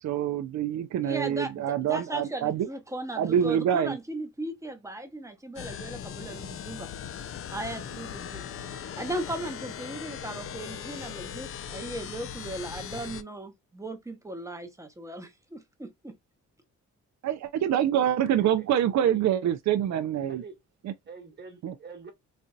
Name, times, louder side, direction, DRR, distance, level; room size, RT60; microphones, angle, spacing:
voice 1, 0.0-2.7 3.2-4.0 17.2-20.4 20.8-20.9 21.6-21.7, right 10 dB, 60° right, 0.5 m, -26 dB
voice 2, 1.0-6.9 7.5-16.1, right 1 dB, 10° right, 0.8 m, -37 dB
sound 1, 5.6-13.2, left 8 dB, 45° left, 0.4 m, -39 dB
voice 3, 21.1-22.1, right 4 dB, 35° right, 1.3 m, -45 dB
4.2 x 2.6 x 2.2 m
cardioid pair, 120°, 31 cm